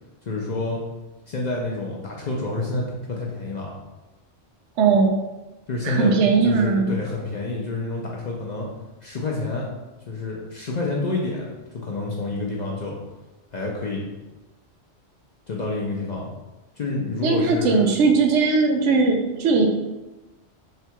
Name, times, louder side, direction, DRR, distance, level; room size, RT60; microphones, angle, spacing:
voice 1, 0.2-0.8 1.3-3.7 5.7-6.1 6.4-8.7 9.0-9.7 10.1-13.0 13.5-14.1 15.5-16.3 16.8-17.8, left 2 dB, 50° left, -2 dB, 0.5 m, -28 dB
voice 2, 4.8-5.2 5.8-7.0 17.2-19.7, right 4 dB, 80° right, 3 dB, 0.9 m, -19 dB
3.7 x 2.3 x 4.4 m, 1.1 s
omnidirectional pair, 1.2 m